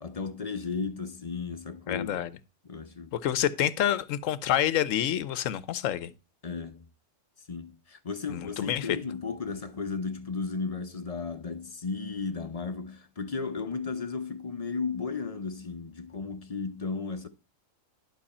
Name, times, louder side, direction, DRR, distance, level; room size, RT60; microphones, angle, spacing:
voice 1, 0.0-2.3 2.6-3.2 6.4-6.9 7.5-17.3, left 4 dB, 35° left, 0.8 m, -34 dB
voice 2, 1.9-2.3 3.1-6.1 8.3-8.9, left 11 dB, 85° left, 1.1 m, -28 dB
11.5 x 6.1 x 4.2 m
omnidirectional pair, 1.3 m